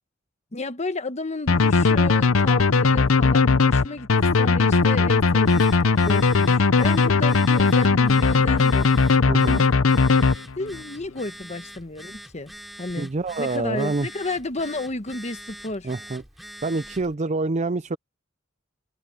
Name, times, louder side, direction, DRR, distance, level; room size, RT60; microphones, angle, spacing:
voice 1, 0.5-4.1 4.4-8.9 10.6-13.1 13.4-15.9, left 2 dB, 35° left, 1.2 m, -32 dB
sound 1, 1.5-10.8, left 4 dB, 85° left, 0.8 m, -18 dB
Telephone, 5.2-17.1, equal, ahead, 5.4 m, -43 dB
voice 2, 9.3-9.7 13.0-14.1 15.8-16.2 16.6-18.0, right 3 dB, 35° right, 0.5 m, -26 dB
head